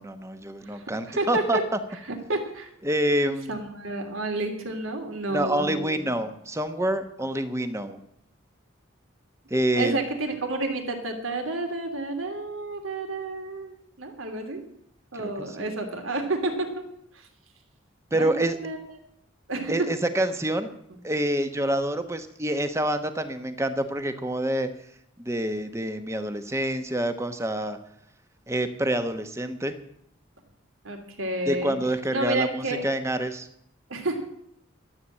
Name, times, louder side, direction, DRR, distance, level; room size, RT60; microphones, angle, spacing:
voice 1, 0.0-1.6 2.8-3.5 5.3-8.0 9.5-10.0 15.2-15.7 18.1-18.6 19.7-20.7 21.0-24.7 25.2-27.8 28.5-29.8 31.5-33.5, right 1 dB, 15° right, 8 dB, 1.1 m, -27 dB
voice 2, 0.7-1.6 2.3-2.7 3.5-6.0 9.7-14.6 15.1-16.8 17.1-17.3 18.1-18.8 19.5-19.9 30.8-31.8 32.1-32.8 33.9-34.2, right 2 dB, 90° right, 4 dB, 3.0 m, -30 dB
13.0 x 8.6 x 8.6 m, 0.74 s
head